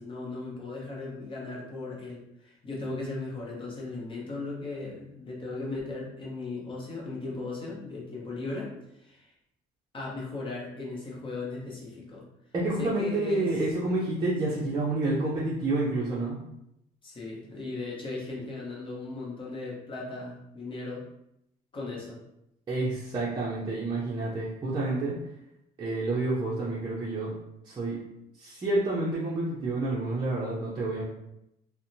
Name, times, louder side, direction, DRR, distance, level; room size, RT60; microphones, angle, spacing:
voice 1, 0.0-8.7 9.0-9.3 9.9-12.3 12.8-13.5 14.5-14.6 17.0-21.0 21.7-22.2, left 3 dB, 30° left, -4 dB, 0.8 m, -37 dB
voice 2, 12.5-16.4 22.7-25.2 25.8-27.4 27.6-28.0 28.4-31.0, right 2 dB, 25° right, -7 dB, 0.6 m, -29 dB
2.7 x 2.1 x 2.6 m, 0.82 s
cardioid pair, 110°, 17 cm